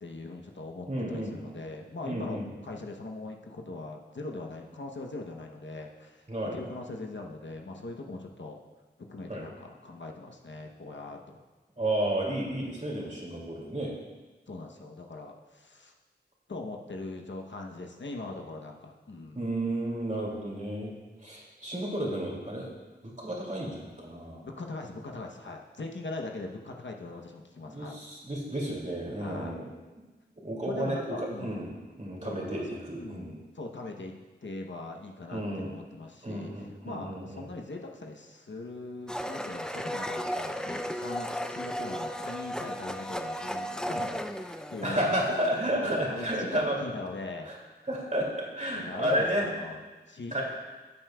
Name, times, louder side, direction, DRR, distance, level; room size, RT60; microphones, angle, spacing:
voice 1, 0.0-6.3 6.5-8.6 9.1-11.4 14.5-15.9 16.5-19.5 24.4-28.0 29.2-29.6 30.6-31.5 32.2-33.3 33.5-34.1 34.4-36.5 36.8-45.2 45.7-47.5 48.7-50.4, left 2 dB, 75° left, 1 dB, 0.9 m, -41 dB
voice 2, 0.9-1.3 2.0-2.5 6.3-6.6 9.3-9.4 11.8-13.9 19.3-20.9 21.2-22.7 23.0-24.4 27.7-29.7 30.4-33.4 35.3-35.7 36.2-37.5 44.8-46.8 47.4-47.6 47.9-49.5 50.3-50.4, right 1 dB, 40° right, -3 dB, 2.5 m, -32 dB
Domestic sounds home sounds, 39.1-45.7, equal, 5° left, 0.4 m, -35 dB
13.0 x 7.6 x 2.3 m, 1.2 s
wide cardioid pair, 40°, 19 cm